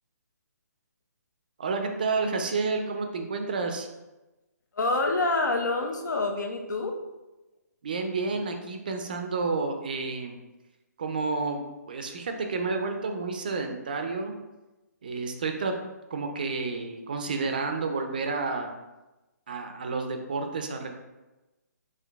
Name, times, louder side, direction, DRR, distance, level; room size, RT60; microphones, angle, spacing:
voice 1, 1.6-3.9 7.8-10.4 11.0-11.6 11.9-14.3 15.0-15.7 16.1-18.7 19.5-21.0, right 4 dB, 30° right, 5 dB, 0.4 m, -30 dB
voice 2, 4.8-7.0, left 2 dB, 90° left, 3 dB, 0.8 m, -27 dB
5.9 x 2.5 x 3.4 m, 1.1 s
hypercardioid pair, 175°, 9 cm